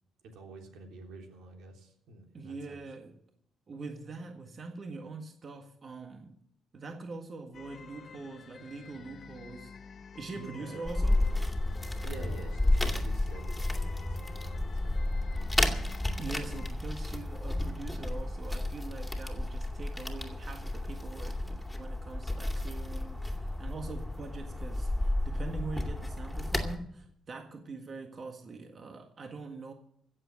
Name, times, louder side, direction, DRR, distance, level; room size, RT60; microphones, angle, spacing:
voice 1, 0.3-2.8 10.3-10.9 12.0-15.0, right 3 dB, 85° right, 3.5 m, -48 dB
voice 2, 2.3-3.2 3.7-6.4 6.7-9.7 10.1-11.2 16.2-29.7, right 3 dB, 45° right, 1.7 m, -43 dB
sound 1, 7.5-16.7, left 6 dB, 50° left, 1.1 m, -50 dB
sound 2, 10.8-26.8, left 1 dB, 5° left, 2.5 m, -32 dB
16.0 x 7.6 x 8.6 m
cardioid pair, 90°, 0 cm